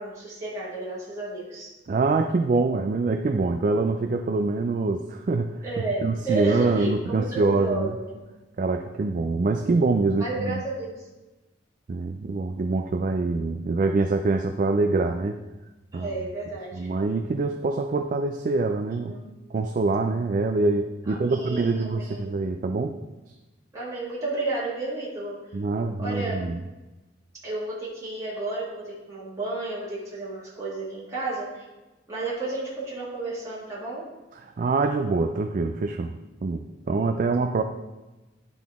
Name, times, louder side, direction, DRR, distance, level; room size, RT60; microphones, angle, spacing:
voice 1, 0.0-1.7 5.6-8.1 10.2-11.1 15.9-16.9 18.9-19.3 21.1-22.2 23.7-25.6 26.0-26.4 27.4-31.6 32.1-34.1, right 2 dB, 15° right, -8 dB, 1.8 m, -32 dB
voice 2, 1.9-5.6 6.0-7.9 8.6-10.6 11.9-15.4 15.9-16.1 16.7-19.1 19.5-23.0 25.5-26.6 34.4-37.6, right 3 dB, 45° right, 6 dB, 0.3 m, -25 dB
10.5 x 3.9 x 3.5 m, 1.1 s
head